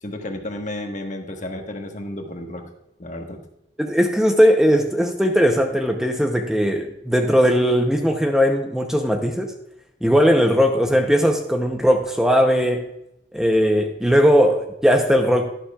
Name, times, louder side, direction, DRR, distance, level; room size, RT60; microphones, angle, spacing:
voice 1, 0.0-2.7 3.0-3.4, left 1 dB, 45° left, 3 dB, 1.3 m, -32 dB
voice 2, 3.8-9.5 10.0-12.8 13.3-15.5, equal, 5° right, 3 dB, 0.7 m, -18 dB
11.5 x 11.5 x 2.3 m, 0.83 s
head